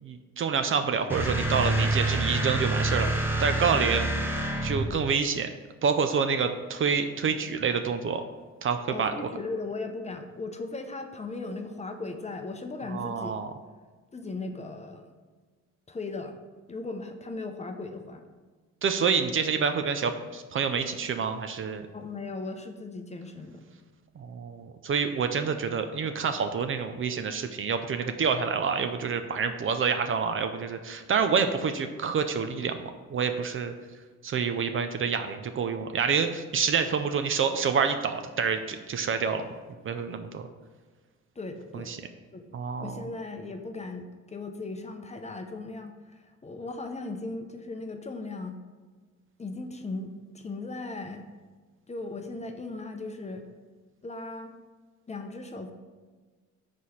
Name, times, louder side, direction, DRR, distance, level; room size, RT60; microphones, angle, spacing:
voice 1, 0.0-3.1 3.4-4.1 4.6-5.5 5.8-8.2 8.6-9.1 12.9-13.5 18.8-21.9 24.2-33.7 34.2-39.5 39.8-40.5 41.7-42.0 42.5-43.1, right 6 dB, 45° right, 8 dB, 0.5 m, -27 dB
sound 1, 1.1-5.0, right 2 dB, 5° right, 0.9 m, -27 dB
voice 2, 8.9-13.4 14.1-15.1 15.9-16.4 16.7-18.2 21.9-23.6 41.4-42.0 42.3-42.4 42.8-48.6 49.4-51.3 51.9-53.5 54.0-54.5 55.1-55.7, left 3 dB, 20° left, 5 dB, 0.6 m, -37 dB
4.8 x 4.1 x 5.6 m, 1.4 s
cardioid pair, 90°, 30 cm